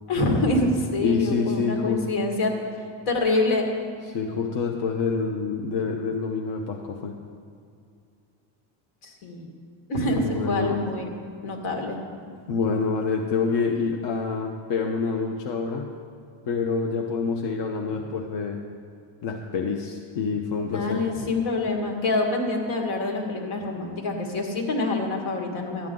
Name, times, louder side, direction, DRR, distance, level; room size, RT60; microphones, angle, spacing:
voice 1, 0.1-2.6 3.1-3.7 9.0-9.5 9.9-11.1 11.4-12.0 18.0-18.1 20.7-25.9, left 2 dB, 75° left, 2 dB, 1.9 m, -26 dB
voice 2, 1.0-2.1 4.1-7.2 10.0-10.7 12.5-15.9 16.5-18.6 19.2-21.0, left 5 dB, 60° left, 1 dB, 0.9 m, -27 dB
12.5 x 9.3 x 3.8 m, 2.4 s
cardioid pair, 135°, 49 cm